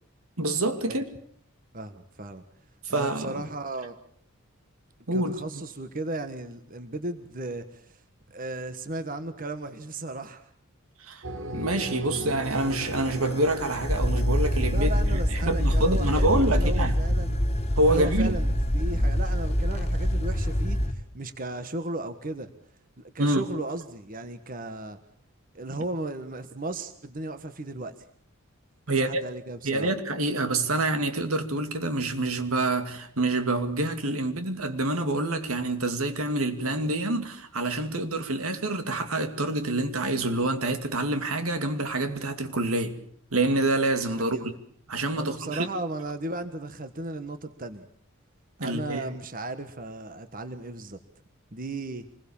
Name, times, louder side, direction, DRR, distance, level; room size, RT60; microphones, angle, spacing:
voice 1, 0.4-1.1 2.8-3.4 5.1-5.6 11.0-11.2 11.5-17.0 17.8-18.3 23.2-23.4 28.9-29.2 29.6-42.9 43.3-44.5 44.9-45.7 48.6-49.1, right 2 dB, 85° right, 2.5 m, -27 dB
voice 2, 1.7-2.4 2.9-4.0 5.1-8.0 8.3-10.5 14.7-17.4 17.9-22.5 23.0-25.0 25.5-28.0 28.9-29.9 44.3-44.5 45.2-47.9 48.6-51.0 51.5-52.0, right 2 dB, 40° right, 1.4 m, -35 dB
sound 1, 11.2-16.8, right 1 dB, 65° right, 3.4 m, -39 dB
sound 2, 12.5-20.9, equal, 30° left, 2.1 m, -25 dB
26.0 x 21.5 x 7.2 m
head